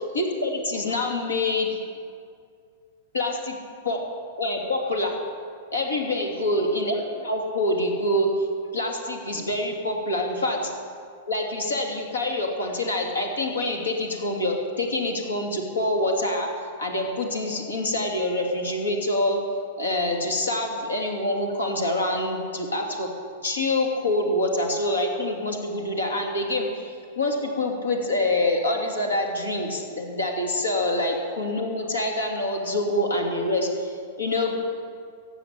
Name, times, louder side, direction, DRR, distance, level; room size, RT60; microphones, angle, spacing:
voice 1, 0.0-1.8 3.1-3.5 3.8-4.0 4.4-5.2 5.7-8.5 8.7-10.7 11.3-16.5 16.8-19.4 19.8-23.1 23.4-34.5, left 1 dB, 85° left, 2 dB, 2.7 m, -26 dB
15.5 x 8.9 x 8.7 m, 2.2 s
hypercardioid pair, 105°, 0 cm